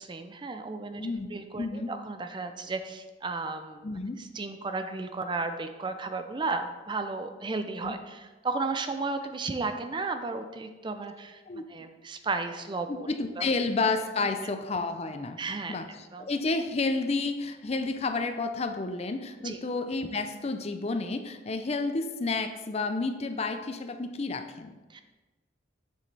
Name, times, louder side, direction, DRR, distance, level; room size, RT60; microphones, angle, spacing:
voice 1, 0.0-3.9 4.2-13.1 13.4-13.5 15.4-15.8 16.1-16.3 19.4-19.6 24.9-25.0, right 3 dB, 25° right, 8 dB, 0.4 m, -34 dB
voice 2, 1.0-1.3 1.6-1.9 3.8-4.2 7.8-8.0 11.5-11.6 12.9-15.4 15.7-24.8, left 3 dB, 35° left, 8 dB, 0.5 m, -31 dB
7.5 x 6.9 x 3.3 m, 1.2 s
head